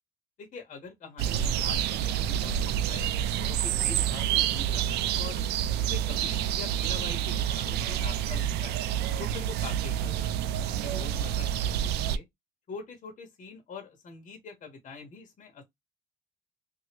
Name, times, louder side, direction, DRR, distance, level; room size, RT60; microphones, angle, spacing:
voice 1, 0.4-5.4 5.8-8.8 9.2-12.2 12.7-15.6, left 4 dB, 50° left, 1.3 m, -44 dB
sound 1, 1.2-12.2, right 10 dB, 80° right, 0.4 m, -28 dB
2.9 x 2.6 x 2.9 m
cardioid pair, 110°, 17 cm